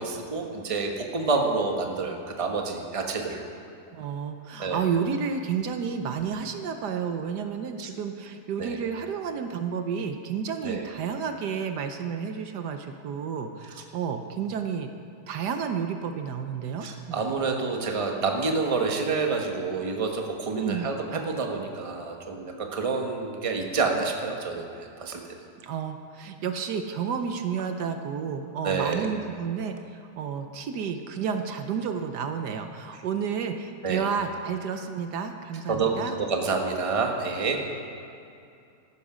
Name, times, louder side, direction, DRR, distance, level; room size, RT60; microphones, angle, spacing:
voice 1, 0.0-3.4 4.6-4.8 8.6-8.8 10.6-10.9 16.8-25.2 28.6-29.1 32.9-33.0 33.8-34.0 35.7-37.6, right 4 dB, 20° right, 2 dB, 1.1 m, -28 dB
voice 2, 3.9-14.9 15.3-17.2 20.5-20.9 25.6-36.2, right 6 dB, 70° right, 7 dB, 1.3 m, -31 dB
14.5 x 11.5 x 5.0 m, 2.5 s
omnidirectional pair, 1.9 m